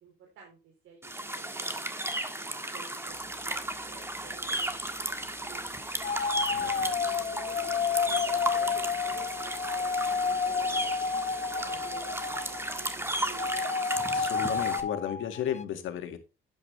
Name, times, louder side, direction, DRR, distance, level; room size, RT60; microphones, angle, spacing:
voice 1, 0.0-2.3 2.5-4.7 5.3-5.7 6.5-10.9 11.5-13.7, right 5 dB, 85° right, 3.4 m, -51 dB
sound 1, 1.0-14.8, right 1 dB, 10° right, 1.6 m, -35 dB
sound 2, 3.0-13.6, right 1 dB, 45° right, 4.5 m, -57 dB
sound 3, 6.0-13.0 13.3-15.6, left 5 dB, 35° left, 0.8 m, -30 dB
voice 2, 14.1-16.2, left 10 dB, 85° left, 2.0 m, -34 dB
11.5 x 8.6 x 3.3 m
cardioid pair, 90°, 20 cm